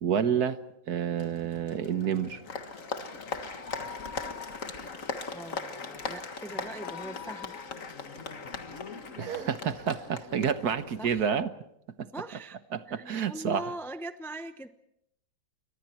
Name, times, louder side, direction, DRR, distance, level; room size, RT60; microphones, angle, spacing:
voice 1, 0.0-0.6 0.9-2.4 9.2-11.5 12.0-12.1 12.7-13.6, right 8 dB, 60° right, 11 dB, 1.5 m, -29 dB
Applause, 1.2-11.3, left 4 dB, 45° left, 1.9 m, -39 dB
voice 2, 5.3-7.6 11.0-11.3 12.1-12.6 12.9-14.7, right 1 dB, 5° left, 9 dB, 0.4 m, -41 dB
29.5 x 24.0 x 4.5 m, 0.78 s
omnidirectional pair, 1.9 m